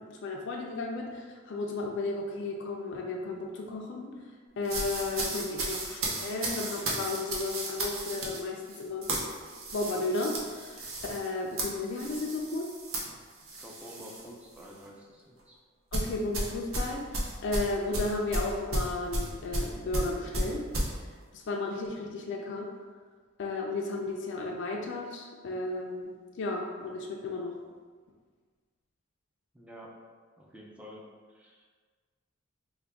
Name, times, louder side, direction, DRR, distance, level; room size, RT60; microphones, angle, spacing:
voice 1, 0.0-4.2 4.6-9.1 9.7-12.7 15.9-20.6 21.3-22.7 23.4-27.5, left 2 dB, 60° left, 0 dB, 0.4 m, -34 dB
sound 1, 4.6-14.3 14.6-14.9 15.9-20.9, right 1 dB, 75° right, 0.7 m, -34 dB
voice 2, 13.5-15.6 29.5-29.9 30.4-31.7, equal, 5° right, -3 dB, 0.4 m, -49 dB
3.4 x 2.2 x 3.5 m, 1.5 s
head